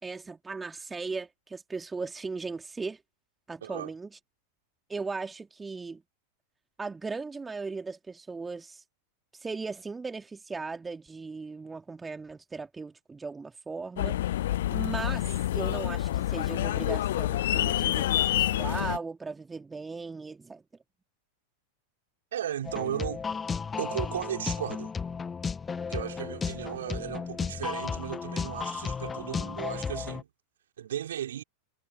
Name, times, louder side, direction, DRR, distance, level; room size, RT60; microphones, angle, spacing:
voice 1, 0.0-3.0 3.5-4.1 4.9-6.0 6.8-8.8 9.4-14.2 14.7-20.6, right 4 dB, 10° right, 3.3 m, -37 dB
voice 2, 3.6-3.9 22.3-23.2 23.8-24.9 25.9-30.3 30.8-31.4, right 10 dB, 60° right, 4.8 m, -35 dB
sound 1, 14.0-19.0, left 13 dB, 55° left, 0.4 m, -28 dB
sound 2, 22.6-30.2, left 5 dB, 15° left, 1.6 m, -34 dB
figure-of-eight pair, 90°, 0 cm